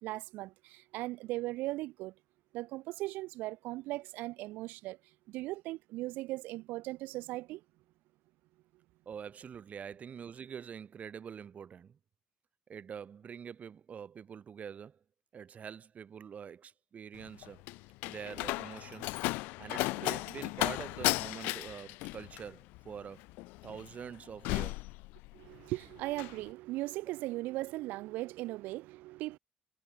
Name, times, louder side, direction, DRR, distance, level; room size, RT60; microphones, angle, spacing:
voice 1, 0.0-2.1 2.5-5.0 5.3-7.6 25.3-29.4, right 19 dB, 70° right, 0.4 m, -38 dB
voice 2, 9.1-12.0 12.7-15.0 15.3-17.6 18.0-23.2 23.6-24.8, right 7 dB, 50° right, 3.5 m, -45 dB
Slam, 17.1-25.6 25.9-26.4, left 23 dB, 75° left, 1.0 m, -35 dB
hypercardioid pair, 50°, 3 cm